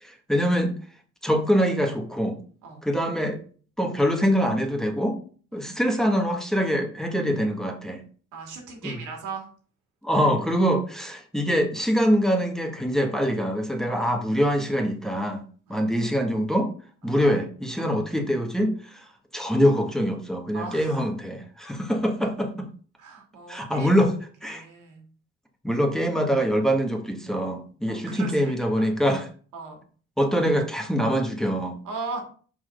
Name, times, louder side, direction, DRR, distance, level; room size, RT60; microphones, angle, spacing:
voice 1, 0.0-0.7 1.2-2.4 2.8-3.4 3.8-5.2 5.5-8.0 8.8-8.9 10.0-15.4 15.7-16.7 17.0-22.7 23.5-24.1 24.4-24.6 25.6-29.3 30.2-31.8, equal, ahead, 3 dB, 1.6 m, -24 dB
voice 2, 8.3-9.5 10.1-10.3 15.6-16.3 17.0-17.4 17.8-17.9 20.5-21.0 23.0-24.1 24.4-25.0 27.9-28.4 28.8-28.9 29.5-29.8 31.8-32.2, right 4 dB, 85° right, 2 dB, 2.8 m, -38 dB
5.8 x 4.6 x 6.5 m, 0.42 s
cardioid pair, 90°, 30 cm